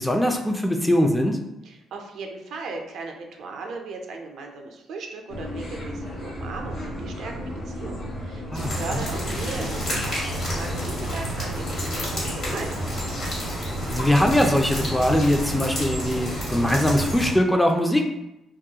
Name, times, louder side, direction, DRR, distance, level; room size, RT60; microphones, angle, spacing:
voice 1, 0.0-1.4 8.5-8.7 13.9-18.1, left 1 dB, 5° left, 3 dB, 0.3 m, -21 dB
voice 2, 1.6-13.2, right 3 dB, 70° right, 3 dB, 0.4 m, -37 dB
sound 1, 5.3-15.6, equal, 80° left, 0.8 m, -35 dB
sound 2, 8.5-17.3, equal, 55° left, 1.2 m, -30 dB
2.3 x 2.1 x 2.7 m, 0.90 s
cardioid pair, 90°, 0 cm